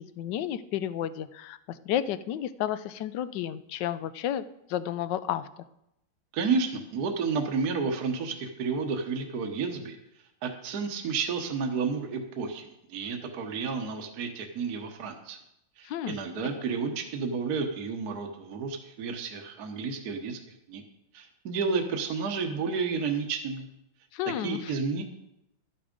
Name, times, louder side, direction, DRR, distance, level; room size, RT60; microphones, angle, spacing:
voice 1, 0.0-5.5 15.8-16.2 24.1-24.7, left 11 dB, 75° left, 14 dB, 1.2 m, -32 dB
voice 2, 6.3-10.0 10.4-15.4 15.8-20.4 20.7-20.8 21.1-23.6 24.4-25.0, right 5 dB, 55° right, 3 dB, 1.5 m, -31 dB
12.5 x 8.7 x 5.2 m, 0.83 s
omnidirectional pair, 2.1 m